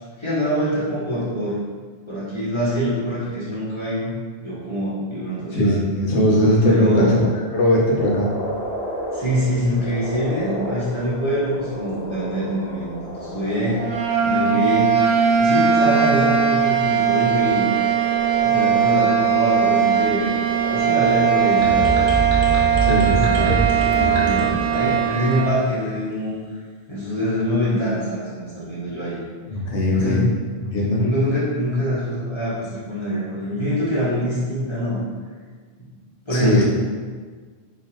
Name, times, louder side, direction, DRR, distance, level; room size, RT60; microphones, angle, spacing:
voice 1, 0.0-1.6 2.1-4.1 4.4-5.8 6.7-7.2 9.1-13.8 14.2-14.9 15.4-17.7 18.4-20.5 20.7-22.2 23.0-26.5 26.9-29.2 29.9-30.3 31.0-35.0 36.2-36.6, equal, 25° left, -10 dB, 1.2 m, -24 dB
voice 2, 5.5-7.3 7.5-8.3 22.8-23.2 29.5-30.3 30.6-31.0 36.3-36.6, equal, 80° left, -3 dB, 1.1 m, -19 dB
sound 1, 8.0-25.0, equal, 40° left, 0.8 m, -33 dB
sound 2, 13.7-25.6, right 8 dB, 60° right, 0.5 m, -19 dB
sound 3, 21.6-25.5, right 4 dB, 85° right, 1.1 m, -24 dB
3.8 x 2.9 x 3.0 m, 1.5 s
omnidirectional pair, 1.2 m